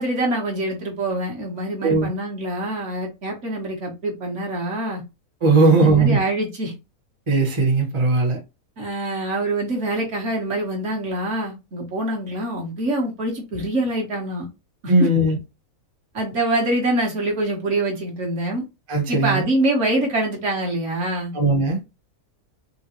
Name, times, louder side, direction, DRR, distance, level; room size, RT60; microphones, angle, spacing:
voice 1, 0.0-5.0 5.6-6.7 8.8-14.5 14.8-14.9 16.1-18.6 19.1-21.3, right 1 dB, 55° right, 1.3 m, -25 dB
voice 2, 5.4-6.2 7.3-8.4 14.9-15.4 18.9-19.5 21.3-21.8, right 3 dB, 30° right, 0.6 m, -18 dB
3.8 x 2.2 x 2.8 m
omnidirectional pair, 1.5 m